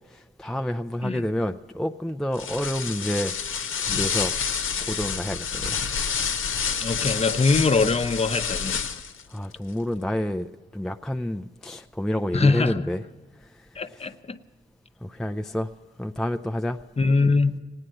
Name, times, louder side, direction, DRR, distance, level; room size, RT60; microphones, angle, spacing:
voice 1, 0.4-3.3 3.9-4.3 4.9-5.8 9.3-13.0 15.0-15.7 16.0-16.8, equal, ahead, 0.4 m, -28 dB
sound 1, 2.3-9.2, left 6 dB, 75° left, 0.9 m, -28 dB
voice 2, 6.8-8.8 12.3-12.9 13.8-14.4 17.0-17.6, left 4 dB, 30° left, 0.7 m, -22 dB
17.0 x 9.9 x 7.7 m
cardioid pair, 85°, 21 cm